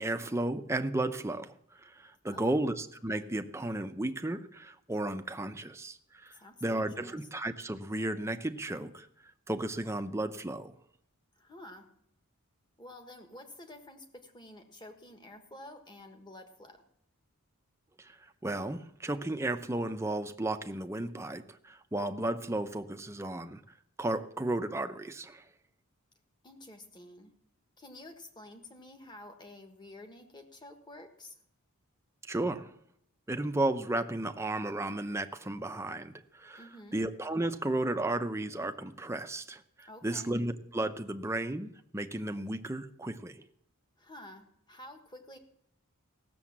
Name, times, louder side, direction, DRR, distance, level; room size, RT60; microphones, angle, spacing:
voice 1, 0.0-1.6 1.8-6.3 6.6-9.1 9.5-10.7 18.0-18.2 18.4-23.6 24.0-25.4 32.2-32.7 33.3-36.6 36.9-43.4, right 2 dB, 10° right, 0.6 m, -34 dB
voice 2, 2.2-2.7 6.3-7.2 11.3-11.9 12.8-16.8 26.4-27.3 27.8-31.3 36.6-37.0 39.9-40.3 44.0-45.4, left 1 dB, 20° left, 1.4 m, -50 dB
16.5 x 6.9 x 7.3 m
head